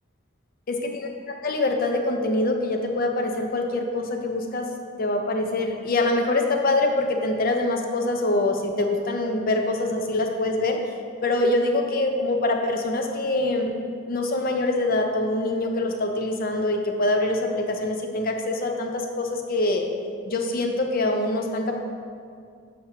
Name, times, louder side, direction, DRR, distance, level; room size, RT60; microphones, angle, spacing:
voice 1, 0.7-4.7 5.0-10.8 11.2-13.8 14.1-19.9 20.3-21.8, left 2 dB, 45° left, 3 dB, 0.5 m, -24 dB
7.3 x 5.7 x 2.9 m, 2.3 s
head